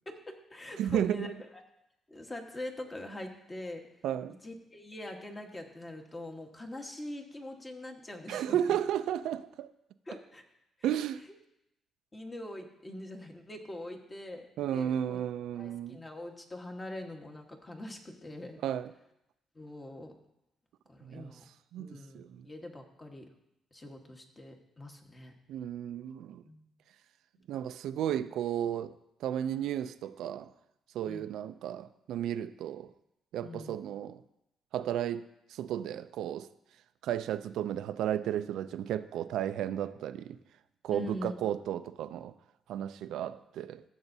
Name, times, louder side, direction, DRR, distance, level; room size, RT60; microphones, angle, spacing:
voice 1, 0.0-1.3 2.1-3.8 4.4-8.6 10.1-10.4 12.1-14.5 14.7-15.2 15.6-18.6 19.5-20.1 20.9-21.4 21.8-23.2 23.7-25.3 26.4-26.6 31.1-31.3 33.4-33.8 40.9-41.4, left 1 dB, 25° left, 1.4 m, -43 dB
voice 2, 0.8-1.3 4.0-4.4 8.3-9.7 10.8-11.2 14.6-16.0 18.6-18.9 21.0-21.3 21.7-22.4 25.5-26.4 27.5-29.0 29.2-30.5 30.9-32.9 33.3-34.2 34.7-36.5 37.0-40.4 40.8-42.3 42.7-43.8, right 10 dB, 80° right, 0.4 m, -33 dB
14.5 x 7.0 x 2.7 m
cardioid pair, 90°, 0 cm